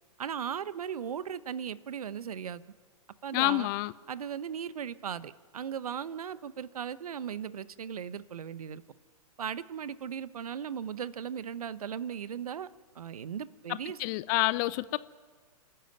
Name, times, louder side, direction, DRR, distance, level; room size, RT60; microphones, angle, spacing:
voice 1, 0.2-2.6 3.2-3.7 4.1-8.8 9.4-12.7 12.9-14.0, right 8 dB, 65° right, 1.1 m, -37 dB
voice 2, 3.3-3.9 13.7-15.0, left 20 dB, 30° left, 0.6 m, -28 dB
29.5 x 12.5 x 9.2 m
figure-of-eight pair, 120°, 20 cm